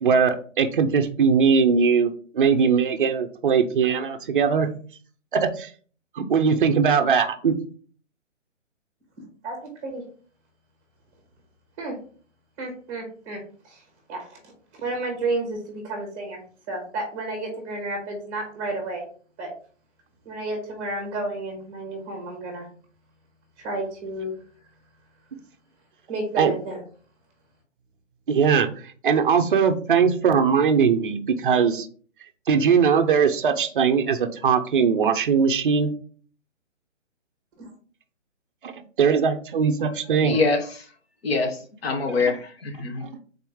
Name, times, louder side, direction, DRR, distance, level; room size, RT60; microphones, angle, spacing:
voice 1, 0.0-4.7 5.3-5.7 6.2-7.5 26.4-26.5 28.3-28.7 29.0-31.9 32.5-35.9 38.6-40.4 42.3-42.4 43.0-43.2, right 6 dB, 45° right, 0.5 m, -20 dB
voice 2, 9.4-10.0 11.8-11.9 12.6-13.8 14.1-14.4 14.7-16.4 16.7-19.0 19.4-19.5 20.2-22.7 23.6-24.3 26.1-26.8 37.6-37.7, right 2 dB, 15° right, 1.0 m, -31 dB
voice 3, 40.2-40.7 41.2-43.0, left 3 dB, 50° left, 0.9 m, -24 dB
3.8 x 2.9 x 3.5 m
hypercardioid pair, 160°, 38 cm